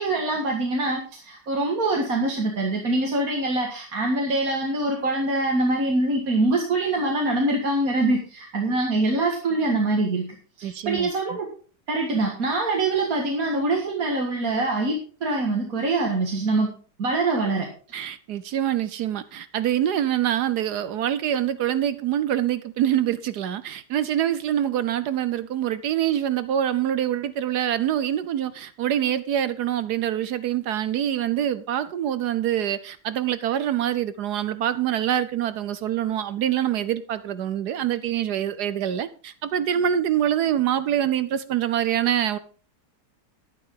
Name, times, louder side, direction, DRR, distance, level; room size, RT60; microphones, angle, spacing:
voice 1, 0.0-10.3 10.6-11.5 11.9-16.7 17.0-17.7, right 2 dB, 55° right, 2.2 m, -24 dB
voice 2, 10.6-11.1 17.9-42.4, right 10 dB, 70° right, 1.2 m, -25 dB
11.5 x 11.0 x 3.7 m
omnidirectional pair, 1.8 m